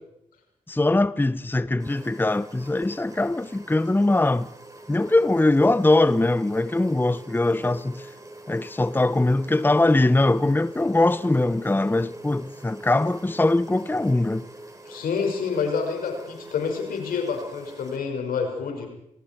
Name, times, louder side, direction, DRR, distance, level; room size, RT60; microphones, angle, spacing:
voice 1, 0.7-4.5 4.9-8.1 8.5-14.5, left 2 dB, 15° left, 0.8 m, -21 dB
sound 1, 1.8-18.0, right 1 dB, 20° right, 4.9 m, -44 dB
voice 2, 14.9-18.9, left 5 dB, 75° left, 5.7 m, -28 dB
28.5 x 20.5 x 4.6 m
hypercardioid pair, 40°, 15 cm